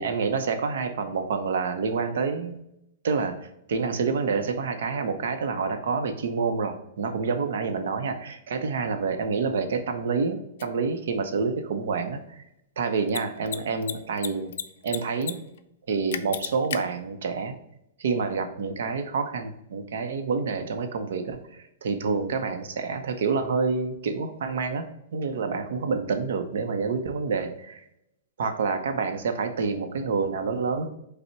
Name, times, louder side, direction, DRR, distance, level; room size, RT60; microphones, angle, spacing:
voice 1, 0.0-2.6 3.0-3.4 3.7-12.4 12.8-14.5 14.8-15.4 15.9-17.5 18.0-27.8 28.4-30.9, right 5 dB, 75° right, 7 dB, 0.6 m, -28 dB
Mechanisms, 10.6-10.7 13.0-13.2 13.5-13.6 13.8-14.6 14.9-15.3 15.6-15.7 16.1-16.8, left 9 dB, 70° left, 0.3 m, -31 dB
5.3 x 2.1 x 4.4 m, 0.82 s
hypercardioid pair, 150°, 0 cm